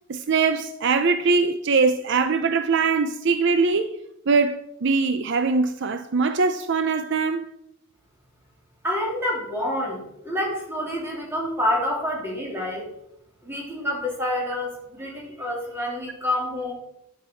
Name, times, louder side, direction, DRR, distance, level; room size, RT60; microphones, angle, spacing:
voice 1, 0.1-4.0 4.3-7.5, right 4 dB, 60° right, 0.5 m, -22 dB
voice 2, 8.8-12.9 13.4-16.7, left 1 dB, 10° right, 3.1 m, -28 dB
11.0 x 7.4 x 4.5 m
head